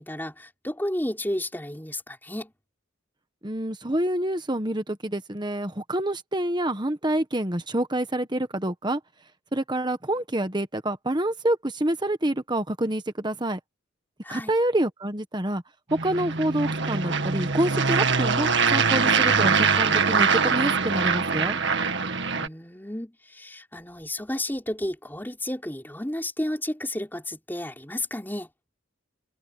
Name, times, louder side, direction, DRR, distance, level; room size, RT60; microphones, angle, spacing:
voice 1, 0.0-2.5 14.2-14.5 22.3-28.5, left 1 dB, 10° left, 3.7 m, -32 dB
voice 2, 3.4-9.0 9.5-13.6 14.3-15.6 16.0-21.6, right 1 dB, 20° right, 1.4 m, -27 dB
sound 1, 15.9-22.5, right 5 dB, 55° right, 2.0 m, -23 dB
head